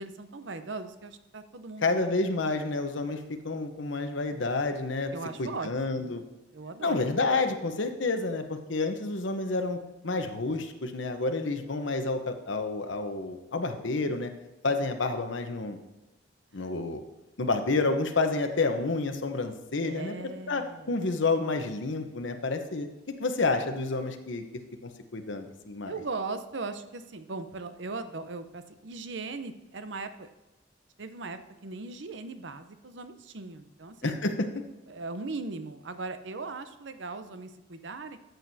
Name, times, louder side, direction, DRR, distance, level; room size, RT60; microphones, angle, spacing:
voice 1, 0.0-2.2 5.1-6.2 6.5-7.0 16.5-16.6 19.8-21.0 25.9-30.3 31.0-34.1 34.9-38.2, right 3 dB, 70° right, 10 dB, 0.7 m, -39 dB
voice 2, 1.8-5.1 5.4-6.2 6.8-9.8 10.0-14.3 14.6-15.8 16.5-17.0 17.4-20.1 20.5-24.4 24.8-25.9 34.0-34.5, left 3 dB, 75° left, 7 dB, 0.9 m, -29 dB
13.0 x 8.0 x 2.8 m, 1.1 s
head